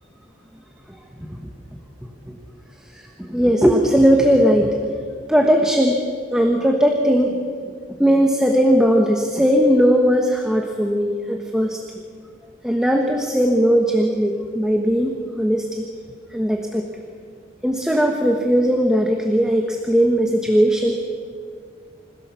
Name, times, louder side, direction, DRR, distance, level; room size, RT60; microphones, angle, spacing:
voice 1, 0.9-1.4 2.3-2.4 2.9-4.8 5.3-6.0 6.3-7.4 8.0-11.8 12.6-15.9 16.3-16.8 17.6-21.0, equal, 5° right, 2 dB, 1.3 m, -18 dB
26.5 x 16.5 x 7.1 m, 2.1 s
head